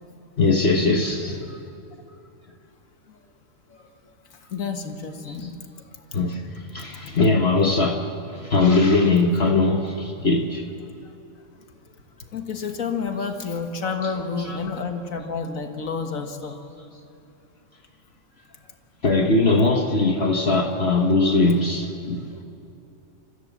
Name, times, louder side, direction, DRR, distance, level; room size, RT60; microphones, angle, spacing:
voice 1, 0.4-1.6 5.3-5.5 6.1-8.0 8.3-10.6 13.8-14.8 19.0-22.3, left 3 dB, 50° left, 3 dB, 1.4 m, -21 dB
voice 2, 4.5-5.6 12.3-16.6, left 5 dB, 80° left, 5 dB, 1.9 m, -29 dB
29.0 x 15.0 x 7.2 m, 2.7 s
omnidirectional pair, 1.4 m